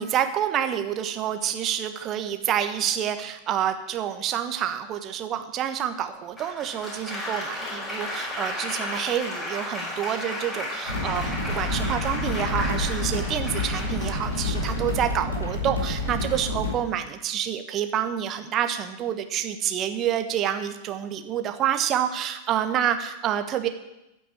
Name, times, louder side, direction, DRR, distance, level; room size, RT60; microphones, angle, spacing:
voice 1, 0.0-23.7, right 10 dB, 30° right, 8 dB, 1.2 m, -28 dB
Applause, 6.4-15.2 16.0-16.4, left 1 dB, 15° left, 5.1 m, -34 dB
sound 1, 10.9-16.7, left 2 dB, 70° left, 3.6 m, -28 dB
14.5 x 6.2 x 8.7 m, 0.93 s
figure-of-eight pair, 90°, 0 cm